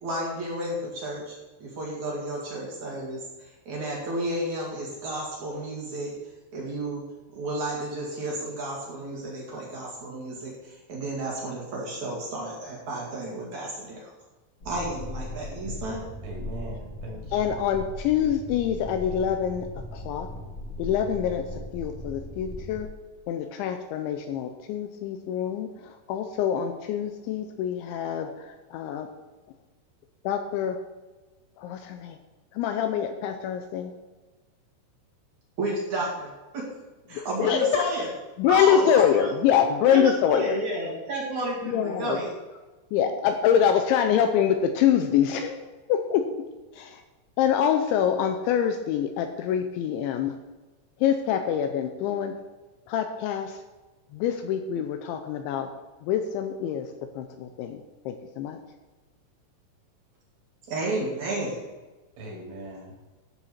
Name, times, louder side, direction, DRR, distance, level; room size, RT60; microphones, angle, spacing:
voice 1, 0.0-6.1 6.5-7.0 7.3-14.1 14.6-16.0 35.6-36.7 37.1-38.1 38.5-39.3 39.9-42.3 60.7-61.6, right 1 dB, 50° right, -2 dB, 2.5 m, -32 dB
sound 1, 14.6-22.8, left 1 dB, 35° left, 2.7 m, -38 dB
voice 2, 16.2-17.5 62.2-62.9, right 1 dB, 70° right, -2 dB, 5.3 m, -40 dB
voice 3, 17.3-20.3 20.8-22.9 23.3-29.1 30.2-30.8 31.6-32.2 32.5-33.9 37.1-37.9 38.4-40.6 41.6-42.2 42.9-46.5 46.7-47.0 47.4-50.4 51.0-52.3 52.9-53.6 54.1-55.7 56.0-56.9 57.2-57.8 58.1-58.6, left 9 dB, 85° left, 7 dB, 2.8 m, -25 dB
14.0 x 7.1 x 4.3 m, 1.2 s
omnidirectional pair, 5.7 m